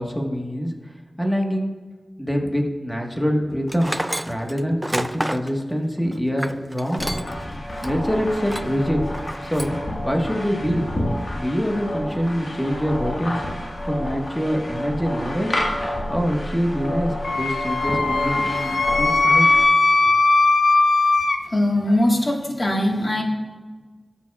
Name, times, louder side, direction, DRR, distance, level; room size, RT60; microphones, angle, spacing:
voice 1, 0.0-1.7 2.2-7.1 7.8-9.0 9.4-9.8 10.0-10.9 11.3-15.6 16.1-19.5 19.8-19.9, equal, 5° left, 1 dB, 1.4 m, -25 dB
Tools, 3.7-7.4 7.8-7.9 8.4-8.8 9.1-9.8, right 1 dB, 10° right, 0.3 m, -30 dB
sound 1, 7.0-19.6, left 1 dB, 60° left, 1.6 m, -29 dB
Wind instrument woodwind instrument, 17.2-21.4, left 3 dB, 75° left, 0.5 m, -18 dB
voice 2, 21.5-23.2, left 1 dB, 40° left, 1 dB, 1.6 m, -21 dB
17.0 x 7.1 x 2.4 m, 1.4 s
wide cardioid pair, 75°, 0 cm